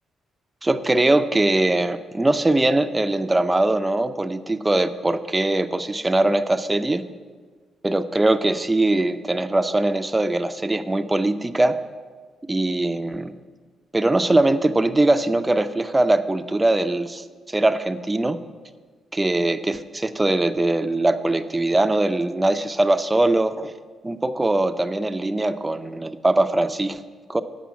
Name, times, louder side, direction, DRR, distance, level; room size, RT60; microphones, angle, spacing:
voice 1, 0.6-7.0 7.8-11.8 12.5-13.3 13.9-18.4 19.1-23.7 24.0-27.0 27.3-27.4, right 2 dB, 15° right, 9 dB, 0.5 m, -21 dB
8.3 x 5.5 x 7.4 m, 1.5 s
cardioid pair, 75°, 0 cm